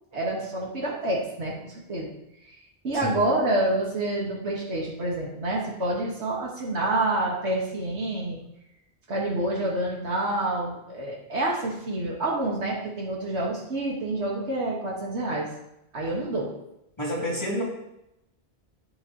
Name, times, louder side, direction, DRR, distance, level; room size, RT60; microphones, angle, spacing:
voice 1, 0.1-2.1 2.8-8.4 9.1-15.5 15.9-16.5, right 2 dB, 80° right, -4 dB, 2.2 m, -28 dB
voice 2, 17.0-17.6, equal, 25° left, -6 dB, 3.2 m, -29 dB
10.0 x 9.0 x 3.2 m, 0.85 s
omnidirectional pair, 1.1 m